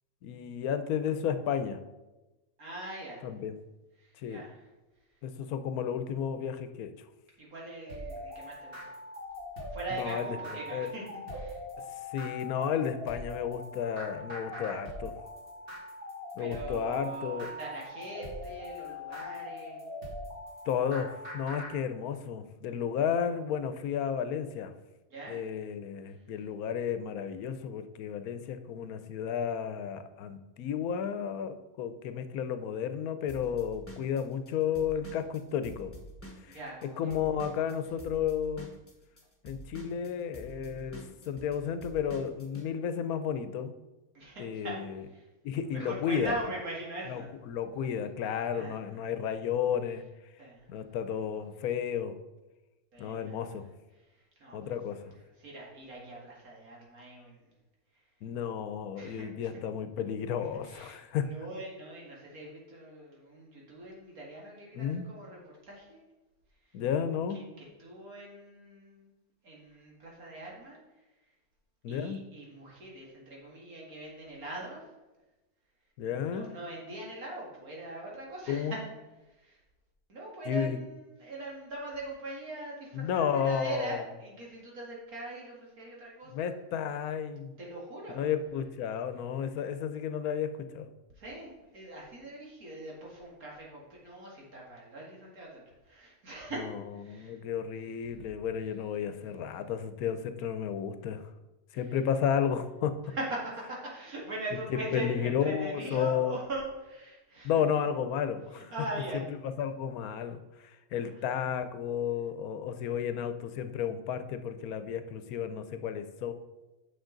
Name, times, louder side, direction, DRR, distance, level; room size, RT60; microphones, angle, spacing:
voice 1, 0.2-1.8 3.2-3.5 4.2-4.4 5.2-6.9 9.9-10.4 10.7-10.9 12.1-15.1 16.4-17.5 20.7-24.7 25.3-35.9 36.4-36.6 37.0-38.7 39.4-43.7 44.4-44.9 45.4-46.3 47.1-50.0 50.7-52.2 53.0-53.7 54.5-55.1 58.2-61.3 64.7-65.1 66.7-67.4 71.8-72.2 76.0-76.6 78.5-78.7 80.5-80.8 82.9-84.0 86.3-87.5 88.1-90.9 96.6-101.3 101.7-103.0 104.7-106.4 107.4-108.7 109.6-116.3, left 8 dB, 80° left, 10 dB, 1.1 m, -32 dB
voice 2, 2.6-3.3 4.0-4.6 7.4-8.9 9.7-11.0 11.3-11.6 16.4-19.9 25.1-25.4 36.5-37.1 44.1-44.8 45.1-45.3 45.6-47.3 48.5-49.0 50.4-50.6 52.9-53.4 54.1-54.7 55.4-57.4 59.0-59.6 60.6-66.0 67.3-69.1 69.4-70.8 71.9-74.8 76.2-78.8 79.3-79.6 80.1-86.5 87.6-88.3 91.2-97.4 98.1-98.3 101.7-101.8 103.1-107.5 108.5-109.2 110.9-111.0, right 1 dB, 75° right, -3 dB, 2.5 m, -41 dB
sound 1, 7.9-21.7, left 1 dB, 40° right, 2.3 m, -41 dB
Drum kit / Drum, 33.3-36.9 37.1-42.7, equal, 10° left, 1.2 m, -48 dB
8.8 x 6.6 x 3.9 m, 1.1 s
omnidirectional pair, 1.5 m